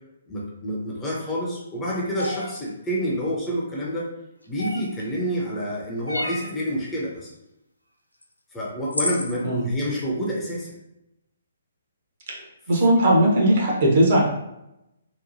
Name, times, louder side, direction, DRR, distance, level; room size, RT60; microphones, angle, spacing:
voice 1, 0.3-4.1 4.5-7.3 8.5-10.8, equal, 10° left, -5 dB, 0.5 m, -28 dB
sound 1, 2.2-2.5 4.6-5.0 6.1-6.5 8.2-8.3 8.9-9.3, equal, 80° left, 0.4 m, -29 dB
voice 2, 12.7-14.2, right 1 dB, 45° right, -3 dB, 0.8 m, -18 dB
2.9 x 2.1 x 2.6 m, 0.87 s
figure-of-eight pair, 130°, 0 cm